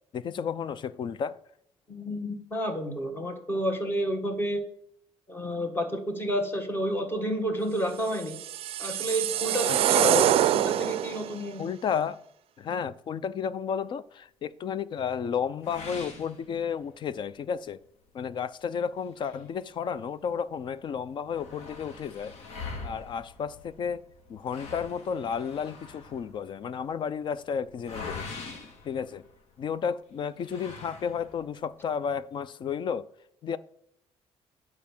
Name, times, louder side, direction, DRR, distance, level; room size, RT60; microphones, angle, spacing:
voice 1, 0.1-1.4 9.7-10.2 11.6-12.2 12.6-17.8 18.1-22.3 22.8-24.0 24.3-28.3 28.8-29.2 29.6-33.1 33.4-33.6, left 7 dB, 45° left, 0.5 m, -32 dB
voice 2, 1.9-4.6 5.3-8.4 8.8-11.7, equal, 20° left, 1.4 m, -30 dB
sound 1, 8.1-11.3, right 12 dB, 60° right, 0.4 m, -25 dB
sound 2, 15.6-17.1 17.5-17.6 18.1-18.2 19.0-20.3 20.6-20.7 20.9-29.7 30.4-31.5, left 4 dB, 85° left, 1.7 m, -43 dB
9.7 x 4.7 x 7.1 m
cardioid pair, 140°, 11 cm